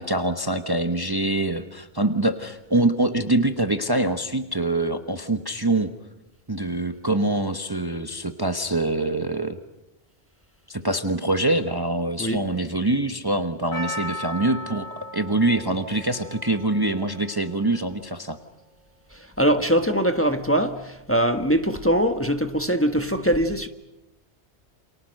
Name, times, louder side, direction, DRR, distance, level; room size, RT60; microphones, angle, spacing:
voice 1, 0.0-5.9 6.5-9.6 10.7-14.9 15.1-18.4, right 2 dB, 20° right, 1.1 m, -24 dB
Percussion, 13.7-18.1 18.3-18.4, left 1 dB, 25° left, 2.7 m, -37 dB
voice 2, 19.1-23.7, equal, 10° left, 1.3 m, -22 dB
29.0 x 27.5 x 6.5 m
omnidirectional pair, 1.1 m